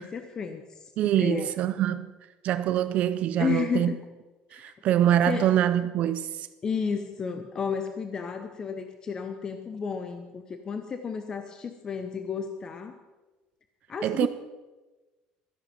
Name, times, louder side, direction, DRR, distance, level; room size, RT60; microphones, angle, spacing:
voice 1, 0.0-0.9 1.2-1.5 3.4-4.0 4.5-4.7 5.3-5.4 6.6-13.0 13.9-14.3, left 6 dB, 25° left, 0.7 m, -32 dB
voice 2, 1.0-2.1 2.4-3.9 4.5-6.5 14.0-14.3, right 11 dB, 50° right, 0.5 m, -24 dB
13.5 x 10.5 x 5.8 m
cardioid pair, 160°, 3 cm